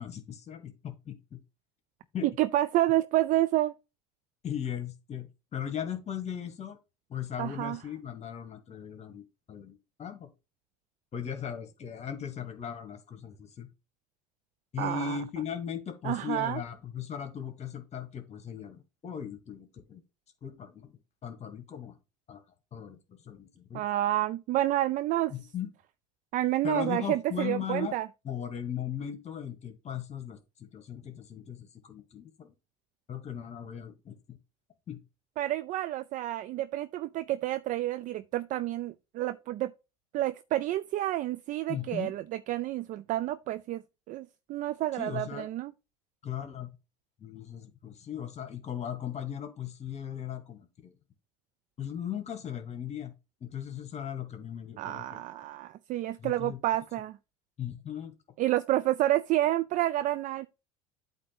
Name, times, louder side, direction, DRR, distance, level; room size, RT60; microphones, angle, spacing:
voice 1, 0.0-1.4 2.1-2.3 4.4-6.8 7.1-10.3 11.1-13.7 14.7-20.0 20.4-20.9 21.2-21.9 22.3-22.4 22.7-23.8 25.3-25.7 26.6-28.0 28.2-32.5 33.1-34.4 34.9-35.0 41.7-42.1 45.0-45.5 46.2-46.7 47.2-50.9 51.8-53.1 53.4-55.2 56.2-56.6 57.6-58.1, left 8 dB, 35° left, 1.6 m, -38 dB
voice 2, 2.2-3.7 7.4-7.8 14.8-15.2 16.0-16.6 23.7-25.3 26.3-28.1 35.4-39.7 40.1-43.8 44.1-45.7 54.8-57.2 58.4-60.5, right 14 dB, 45° right, 0.4 m, -29 dB
8.4 x 2.8 x 5.8 m
hypercardioid pair, 80°, 19 cm